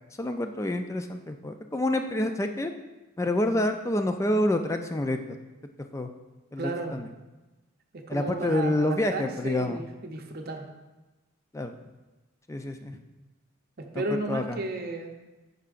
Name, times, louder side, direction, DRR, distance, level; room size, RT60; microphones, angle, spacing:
voice 1, 0.2-2.7 3.2-5.2 5.9-6.1 6.5-7.0 8.1-9.8 11.5-11.7 12.5-13.0 13.9-14.6, left 1 dB, 15° left, 6 dB, 0.3 m, -28 dB
voice 2, 6.6-7.0 8.1-10.7 13.8-15.2, right 2 dB, 45° right, 3 dB, 0.7 m, -34 dB
8.3 x 6.7 x 2.5 m, 1.1 s
head